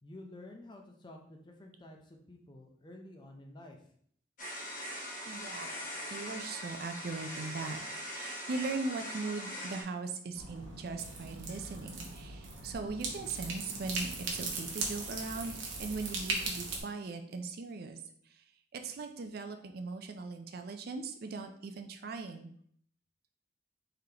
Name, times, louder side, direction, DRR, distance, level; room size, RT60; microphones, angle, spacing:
voice 1, 0.0-3.9, left 1 dB, 25° left, 3 dB, 0.5 m, -51 dB
sound 1, 4.4-9.8, equal, 45° left, 0.8 m, -41 dB
voice 2, 5.3-5.8 6.1-7.8 8.1-18.0 18.3-18.4 18.7-22.5, right 3 dB, 55° right, 6 dB, 0.4 m, -39 dB
sound 2, 10.4-16.8, right 3 dB, 90° right, 0.9 m, -39 dB
3.8 x 3.3 x 2.8 m, 0.62 s
head